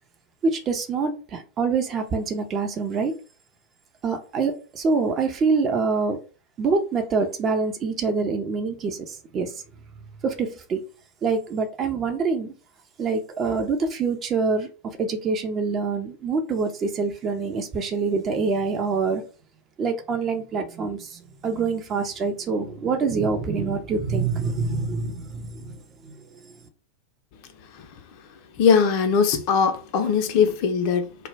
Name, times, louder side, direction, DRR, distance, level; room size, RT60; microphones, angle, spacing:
voice 1, 0.4-3.1 4.0-6.2 6.6-9.5 10.2-10.8 11.2-12.5 13.0-19.2 19.8-26.2, right 4 dB, 30° right, 0.5 m, -25 dB
voice 2, 28.6-31.3, left 6 dB, 45° left, 0.4 m, -20 dB
2.2 x 2.0 x 3.2 m
figure-of-eight pair, 90°, 0 cm